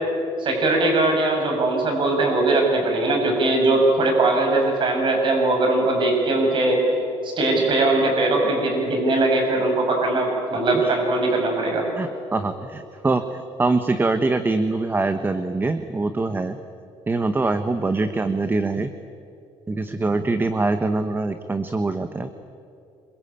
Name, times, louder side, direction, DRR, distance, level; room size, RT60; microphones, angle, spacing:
voice 1, 0.4-6.8 7.2-11.9, right 2 dB, 45° right, 2 dB, 7.7 m, -20 dB
voice 2, 12.0-16.6 17.1-18.9 19.7-22.3, right 3 dB, 20° right, 9 dB, 1.2 m, -24 dB
26.5 x 23.5 x 8.9 m, 2.6 s
cardioid pair, 115°, 11 cm